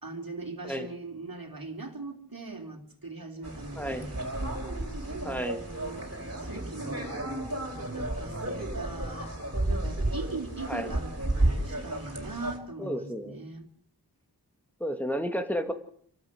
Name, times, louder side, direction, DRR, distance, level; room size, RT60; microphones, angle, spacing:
voice 1, 0.0-4.2 5.0-6.1 6.4-7.1 7.9-9.3 9.7-13.7, right 3 dB, 60° right, 3 dB, 3.5 m, -40 dB
sound 1, 3.4-12.6, right 1 dB, 40° right, 4.8 m, -32 dB
voice 2, 3.8-4.1 5.2-5.6 10.7-11.0 12.8-13.4 14.8-15.7, equal, 5° left, 6 dB, 2.6 m, -32 dB
28.0 x 13.0 x 8.1 m, 0.64 s
wide cardioid pair, 40°, 40 cm